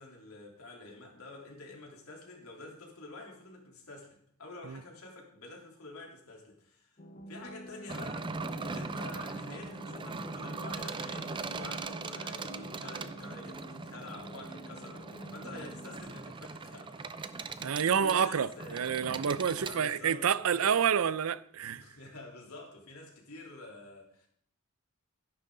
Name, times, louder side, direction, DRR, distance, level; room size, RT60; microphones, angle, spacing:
voice 1, 0.0-7.0 7.3-17.6 17.9-18.9 19.6-21.0 21.7-24.3, left 2 dB, 85° left, 3.4 m, -48 dB
sound 1, 7.0-16.0, right 1 dB, 35° left, 1.1 m, -48 dB
sound 2, 7.9-19.7, right 4 dB, 20° right, 0.5 m, -40 dB
voice 2, 17.6-21.8, right 7 dB, 75° right, 0.5 m, -28 dB
14.0 x 11.0 x 3.8 m
head